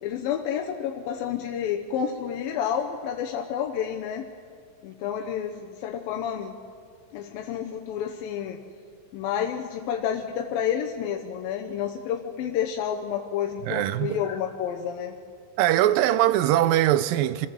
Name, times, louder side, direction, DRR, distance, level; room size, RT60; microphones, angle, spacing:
voice 1, 0.0-4.3 4.8-6.5 7.1-8.6 9.1-15.1, left 9 dB, 90° left, 2.7 m, -30 dB
voice 2, 13.6-14.2 15.6-17.5, right 13 dB, 80° right, 2.4 m, -21 dB
26.0 x 15.0 x 7.3 m
omnidirectional pair, 4.0 m